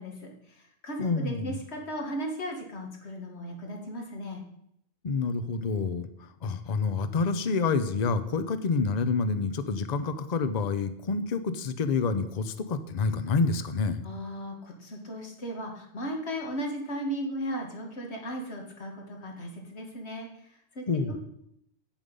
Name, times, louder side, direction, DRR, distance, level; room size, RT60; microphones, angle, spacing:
voice 1, 0.0-4.4 14.0-21.2, equal, 70° left, 2 dB, 2.0 m, -36 dB
voice 2, 1.0-1.6 5.0-14.1 20.9-21.2, left 4 dB, 45° left, 12 dB, 0.7 m, -28 dB
8.9 x 7.3 x 5.4 m, 0.75 s
omnidirectional pair, 1.2 m